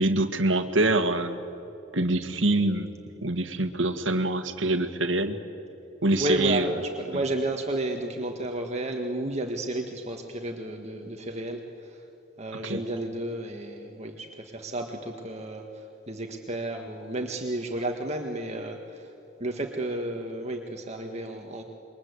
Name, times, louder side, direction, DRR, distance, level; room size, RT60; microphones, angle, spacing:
voice 1, 0.0-1.4 1.9-3.0 3.2-5.4 6.0-6.7 12.6-12.8, right 2 dB, 75° right, 9 dB, 1.9 m, -25 dB
voice 2, 6.2-12.1 12.4-19.1 19.4-21.6, right 1 dB, 35° right, 3 dB, 1.7 m, -32 dB
28.5 x 23.5 x 8.2 m, 2.7 s
head